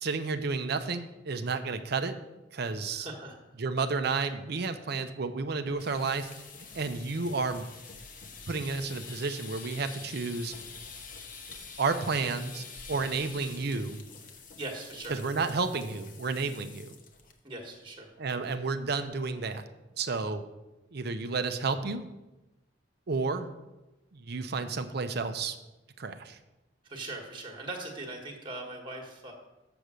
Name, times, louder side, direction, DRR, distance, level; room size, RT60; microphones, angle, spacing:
voice 1, 0.0-2.1 2.5-3.1 3.6-6.3 6.7-7.6 8.5-10.5 11.8-14.0 15.1-16.9 18.2-19.6 20.0-20.4 20.9-22.1 23.1-23.5 24.1-25.6 26.0-26.4, right 4 dB, 60° right, 9 dB, 0.6 m, -31 dB
voice 2, 2.9-3.4 14.6-15.2 17.4-18.1 26.9-29.3, right 2 dB, 25° right, 2 dB, 1.4 m, -40 dB
sound 1, 5.7-17.3 17.6-17.9 18.2-18.3 18.7-19.1, left 5 dB, 50° left, 0.9 m, -46 dB
6.9 x 6.6 x 6.2 m, 1.0 s
head